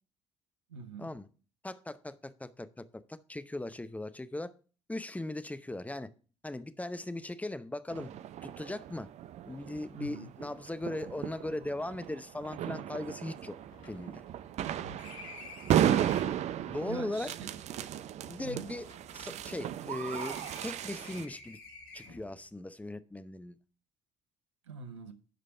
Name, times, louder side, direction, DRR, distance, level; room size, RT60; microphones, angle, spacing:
voice 1, 0.7-1.1 9.9-10.3 14.6-15.1 16.9-17.5 18.4-18.7 24.7-25.1, right 4 dB, 80° right, 0.8 m, -44 dB
voice 2, 1.6-2.8 3.1-4.5 4.9-6.1 6.4-8.1 8.4-9.1 9.5-13.6 13.9-14.2 16.7-17.3 18.2-18.9 19.1-21.6 21.9-23.5, left 1 dB, 10° left, 0.8 m, -38 dB
sound 1, 7.9-21.3, right 11 dB, 50° right, 0.5 m, -35 dB
sound 2, 12.3-12.4 12.7-12.8 13.2-16.5 17.3-19.7 20.0-22.4, left 3 dB, 65° left, 1.9 m, -51 dB
10.0 x 5.0 x 5.7 m
figure-of-eight pair, 50°, 15 cm